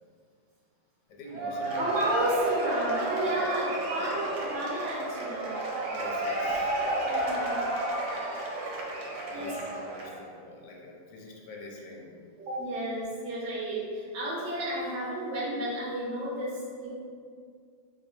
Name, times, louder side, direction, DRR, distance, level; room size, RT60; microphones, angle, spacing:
voice 1, 1.1-2.0 3.3-3.5 4.0-4.2 5.9-6.7 7.9-8.0 9.2-12.1, left 2 dB, 70° left, -1 dB, 1.3 m, -44 dB
Cheering / Applause / Crowd, 1.3-10.2, right 2 dB, 65° right, 1.3 m, -31 dB
voice 2, 1.7-5.6 6.8-7.7 9.3-9.6 12.4-16.9, right 1 dB, 45° right, -5 dB, 1.1 m, -32 dB
3.2 x 2.9 x 4.5 m, 2.1 s
omnidirectional pair, 2.1 m